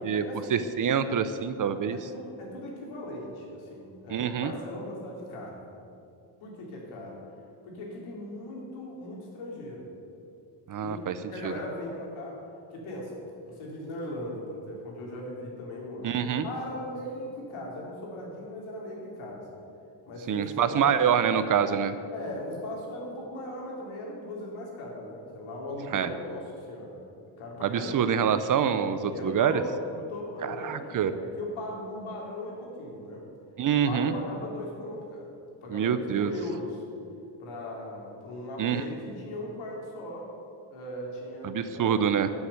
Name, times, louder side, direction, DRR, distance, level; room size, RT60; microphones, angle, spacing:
voice 1, 0.0-0.6 1.9-5.6 6.4-7.2 7.6-9.8 10.8-12.4 12.7-13.2 13.5-19.5 20.1-20.9 22.1-27.0 27.4-28.0 29.0-33.3 33.8-35.3 35.6-36.8 37.4-40.3 40.7-41.9, left 1 dB, 85° left, -2 dB, 3.4 m, -38 dB
voice 2, 0.5-2.0 4.1-4.5 10.7-11.2 11.4-11.5 16.0-16.5 20.3-21.9 25.9-26.1 27.6-29.5 30.4-31.1 33.6-34.1 35.7-36.3 38.6-38.8 41.4-42.3, right 8 dB, 45° right, 12 dB, 0.6 m, -26 dB
11.5 x 7.2 x 8.0 m, 2.6 s
cardioid pair, 135°, 48 cm